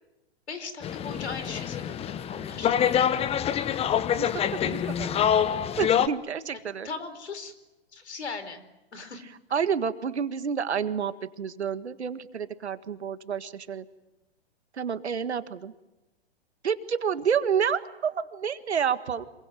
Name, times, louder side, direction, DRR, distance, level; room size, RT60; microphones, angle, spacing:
voice 1, 0.5-3.3 6.8-7.5 7.9-8.6 8.9-9.2, left 4 dB, 80° left, 11 dB, 4.4 m, -39 dB
sound 1, 0.8-6.1, left 9 dB, 20° left, 1.0 m, -26 dB
voice 2, 4.2-5.3 5.8-6.9 9.5-13.8 14.8-15.7 16.6-19.2, right 7 dB, 80° right, 11 dB, 1.8 m, -29 dB
27.0 x 23.5 x 9.1 m, 1.0 s
hypercardioid pair, 120°, 32 cm